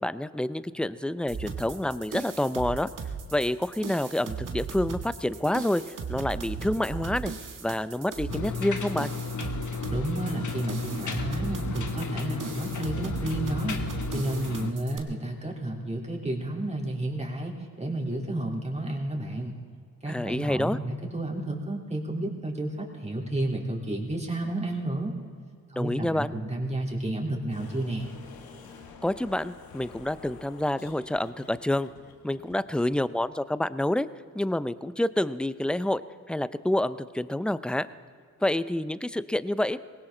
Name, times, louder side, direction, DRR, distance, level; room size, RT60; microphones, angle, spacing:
voice 1, 0.0-2.9 3.3-7.3 7.6-9.1 20.1-20.8 25.8-26.3 29.0-31.9 32.2-34.1 34.3-36.0 36.3-37.9 38.4-39.8, left 1 dB, 5° left, 15 dB, 0.6 m, -28 dB
sound 1, 1.3-15.0, right 6 dB, 60° right, 1.7 m, -37 dB
sound 2, 8.3-14.7, left 4 dB, 55° left, 1.4 m, -33 dB
voice 2, 9.9-13.8 14.1-19.5 20.0-25.1 25.7-28.1, right 1 dB, 20° right, -1 dB, 3.5 m, -31 dB
sound 3, 27.5-33.0, left 5 dB, 85° left, 1.4 m, -49 dB
19.0 x 17.5 x 3.9 m, 2.1 s
supercardioid pair, 50°, 35 cm